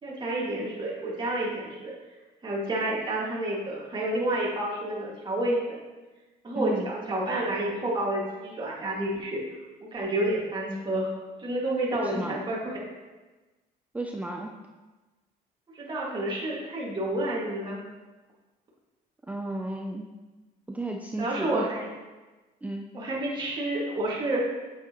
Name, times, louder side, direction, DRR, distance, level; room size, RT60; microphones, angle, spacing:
voice 1, 0.0-1.9 2.4-5.8 6.4-9.4 9.9-11.1 11.4-12.8 15.7-17.8 21.2-21.8 22.9-24.4, right 1 dB, 25° right, -5 dB, 2.0 m, -29 dB
voice 2, 6.5-6.9 12.0-12.4 13.9-14.6 19.3-20.1 20.7-21.7 22.6-22.9, right 2 dB, 10° right, 1 dB, 0.5 m, -33 dB
8.2 x 7.1 x 3.0 m, 1.2 s
cardioid pair, 110°, 17 cm